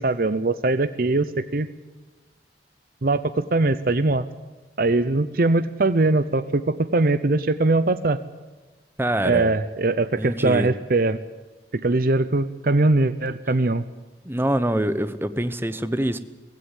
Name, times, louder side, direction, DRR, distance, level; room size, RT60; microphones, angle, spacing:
voice 1, 0.0-1.7 3.0-4.2 4.8-8.2 9.2-11.2 11.7-13.8, right 2 dB, 55° right, 13 dB, 0.7 m, -21 dB
voice 2, 9.0-9.5 10.2-10.7 14.2-16.2, right 1 dB, 15° right, 13 dB, 0.9 m, -24 dB
17.5 x 16.5 x 9.8 m, 1.2 s
head